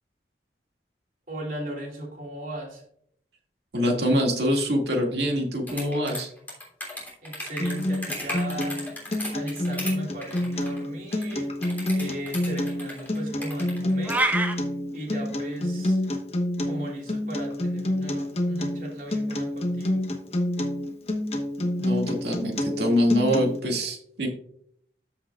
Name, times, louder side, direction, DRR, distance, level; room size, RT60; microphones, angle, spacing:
voice 1, 1.3-2.8 6.8-6.9 7.2-14.3 14.9-16.0 16.6-20.0, right 1 dB, 50° right, -2 dB, 2.9 m, -37 dB
voice 2, 3.7-6.3 21.6-24.3, equal, 75° right, 1 dB, 2.1 m, -25 dB
sound 1, 5.7-9.9 10.2-10.8 11.1-14.3, left 1 dB, 10° left, 3.1 m, -35 dB
Acoustic guitar, 7.6-23.6, left 1 dB, 35° left, 1.1 m, -28 dB
sound 2, 14.0-14.5, right 2 dB, 10° right, 0.6 m, -24 dB
13.5 x 5.7 x 2.4 m, 0.66 s
head